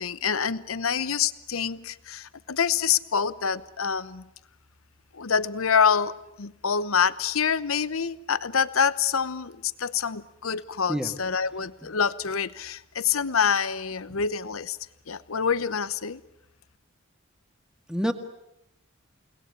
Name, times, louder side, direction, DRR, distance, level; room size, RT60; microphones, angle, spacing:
voice 1, 0.0-4.3 5.1-6.1 6.4-14.8 15.1-16.2, left 6 dB, 85° left, 15 dB, 0.9 m, -26 dB
voice 2, 10.9-11.1 14.1-14.2 17.9-18.1, equal, 5° right, 7 dB, 2.1 m, -27 dB
30.0 x 19.5 x 9.8 m, 0.87 s
head